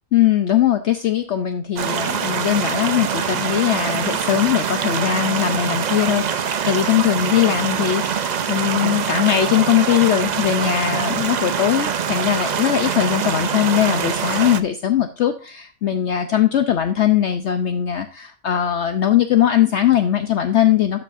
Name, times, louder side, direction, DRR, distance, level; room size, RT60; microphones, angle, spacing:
voice 1, 0.1-21.0, left 11 dB, 60° left, 8 dB, 0.9 m, -20 dB
sound 1, 1.8-14.6, right 7 dB, 60° right, 0.4 m, -24 dB
12.5 x 5.5 x 2.5 m, 0.38 s
omnidirectional pair, 1.4 m